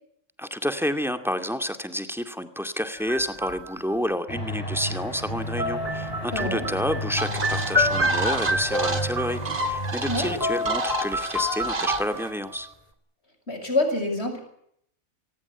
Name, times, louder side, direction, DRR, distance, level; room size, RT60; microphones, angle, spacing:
voice 1, 0.4-12.7, equal, ahead, 8 dB, 2.2 m, -29 dB
sound 1, 3.0-3.9 5.6-10.2 10.4-12.5, left 1 dB, 30° right, 3.4 m, -28 dB
sound 2, 4.3-10.4, equal, 30° left, 6.2 m, -33 dB
voice 2, 6.3-6.7 10.1-10.4 13.5-14.4, left 2 dB, 60° left, 6 dB, 7.3 m, -26 dB
sound 3, 7.2-12.3, right 3 dB, 45° right, 2.5 m, -31 dB
25.5 x 19.5 x 8.3 m, 0.71 s
omnidirectional pair, 1.2 m